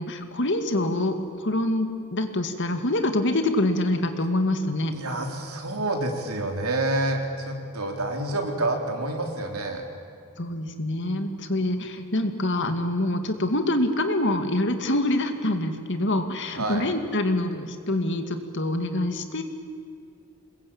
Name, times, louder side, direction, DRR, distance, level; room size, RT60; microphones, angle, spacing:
voice 1, 0.0-4.9 10.4-19.4, left 1 dB, 55° left, 7 dB, 2.1 m, -25 dB
voice 2, 4.9-9.8 16.5-16.9, right 2 dB, 75° right, 3 dB, 3.7 m, -28 dB
26.5 x 21.5 x 8.8 m, 2.3 s
head